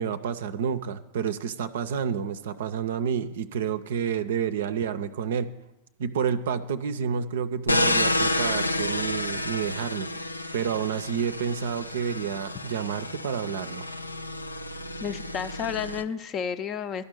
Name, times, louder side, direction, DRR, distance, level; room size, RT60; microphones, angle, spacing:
voice 1, 0.0-5.5 6.0-10.1 10.5-13.9, right 7 dB, 60° right, 12 dB, 0.5 m, -29 dB
sound 1, 7.7-16.0, left 1 dB, 85° left, 0.4 m, -30 dB
voice 2, 15.0-17.0, left 7 dB, 30° left, 12 dB, 0.5 m, -31 dB
12.5 x 5.2 x 9.0 m, 0.99 s
figure-of-eight pair, 90°, 0 cm